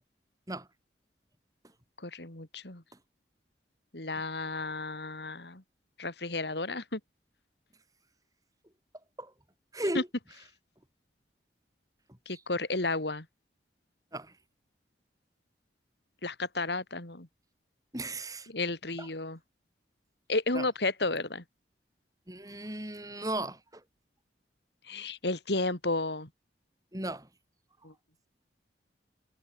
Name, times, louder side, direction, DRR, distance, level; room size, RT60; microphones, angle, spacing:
voice 1, 2.0-2.8 3.9-5.6 6.0-7.0 9.9-10.0 12.3-13.2 16.2-17.3 18.5-19.4 20.3-21.4 24.9-26.3 27.8-27.9, left 2 dB, 70° left, 3.0 m, -32 dB
voice 2, 9.7-10.1 14.1-14.3 17.9-18.5 19.0-19.1 20.5-20.6 22.3-23.8 26.9-27.3, right 1 dB, 20° right, 6.3 m, -36 dB
head